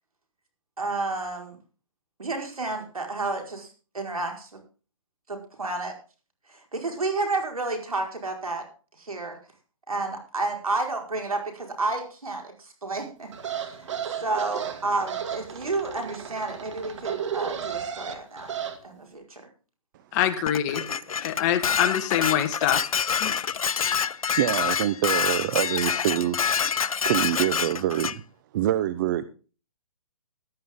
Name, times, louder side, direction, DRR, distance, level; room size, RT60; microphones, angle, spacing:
voice 1, 0.8-1.6 2.2-4.6 5.3-5.9 6.4-8.7 8.9-9.4 9.9-18.5 18.8-19.5, right 3 dB, 90° right, 3 dB, 4.9 m, -31 dB
sound 1, 13.3-18.8, right 8 dB, 55° right, 2.4 m, -33 dB
voice 2, 20.1-20.8 21.2-22.8 23.2-23.5, left 10 dB, 30° left, 9 dB, 1.3 m, -25 dB
Dishes pots and pans, 20.5-28.2, left 7 dB, 80° left, 0.6 m, -27 dB
voice 3, 24.4-28.2 28.5-29.3, right 13 dB, 35° right, 13 dB, 0.8 m, -26 dB
14.5 x 11.5 x 3.7 m, 0.36 s
hypercardioid pair, 140°, 18 cm